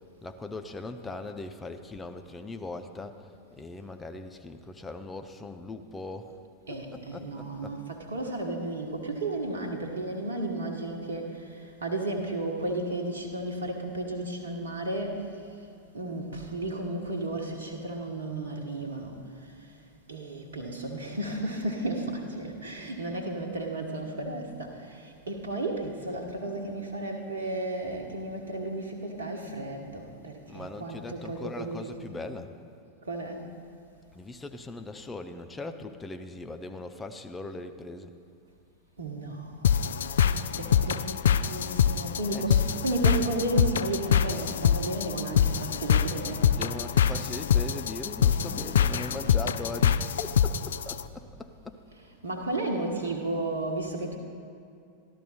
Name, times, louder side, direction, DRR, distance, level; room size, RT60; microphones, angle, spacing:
voice 1, 0.2-3.3 3.6-6.4 6.7-7.8 30.5-32.5 34.1-38.1 42.3-42.7 46.5-51.8, left 2 dB, 10° left, 6 dB, 0.6 m, -40 dB
voice 2, 6.7-15.3 15.9-19.7 20.1-31.9 33.0-33.5 39.0-39.9 40.6-46.5 52.2-54.2, right 2 dB, 70° right, 3 dB, 1.2 m, -33 dB
sound 1, 39.6-51.0, left 8 dB, 65° left, 0.3 m, -25 dB
13.5 x 12.0 x 4.3 m, 2.5 s
figure-of-eight pair, 90°, 0 cm